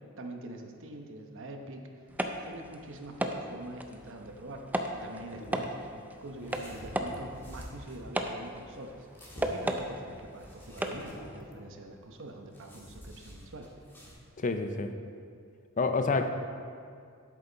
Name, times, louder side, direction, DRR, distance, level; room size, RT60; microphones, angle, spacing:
voice 1, 0.2-1.9 2.4-4.6 4.9-9.1 9.5-13.7, right 1 dB, 65° right, 3 dB, 0.9 m, -44 dB
sound 1, 2.1-11.4, right 1 dB, 10° right, 0.5 m, -37 dB
sound 2, 3.8-11.6, equal, 75° left, 1.5 m, -52 dB
sound 3, 5.3-14.1, equal, 10° left, 1.8 m, -51 dB
voice 2, 14.4-14.9 15.8-16.3, left 3 dB, 35° left, 7 dB, 0.6 m, -28 dB
10.5 x 8.4 x 4.0 m, 2.3 s
head